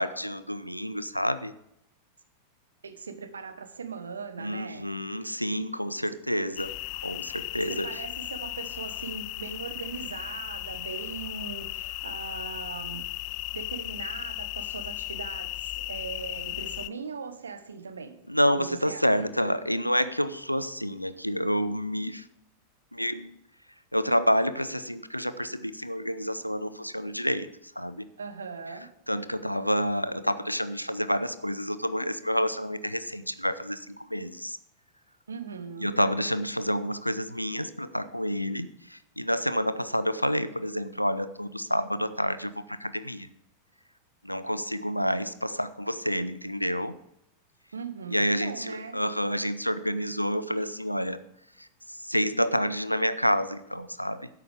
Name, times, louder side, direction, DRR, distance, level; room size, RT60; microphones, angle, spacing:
voice 1, 0.0-1.5 4.4-7.9 18.3-22.2 22.9-23.3 23.9-27.5 27.8-28.0 29.1-34.6 35.8-43.3 44.2-46.9 48.1-51.2 51.6-54.3, equal, 90° left, 14 dB, 0.6 m, -29 dB
voice 2, 2.8-4.9 7.7-13.1 13.5-18.2 18.5-19.3 28.2-28.9 35.3-36.0 47.7-49.0, right 5 dB, 70° right, 10 dB, 1.2 m, -39 dB
sound 1, 6.6-16.9, left 20 dB, 45° left, 0.3 m, -36 dB
13.0 x 10.5 x 3.6 m, 0.75 s
figure-of-eight pair, 90°, 0 cm